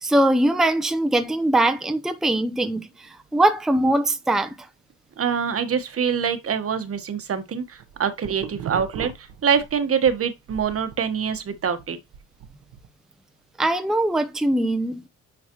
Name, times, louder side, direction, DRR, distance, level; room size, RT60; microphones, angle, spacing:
voice 1, 0.0-4.6 13.6-15.1, right 1 dB, ahead, 0.7 m, -21 dB
voice 2, 5.2-12.0, right 7 dB, 50° right, 1.2 m, -25 dB
sound 1, 7.6-10.2 10.5-12.9, right 9 dB, 85° right, 1.2 m, -38 dB
9.6 x 4.0 x 3.0 m
cardioid pair, 90°, 30 cm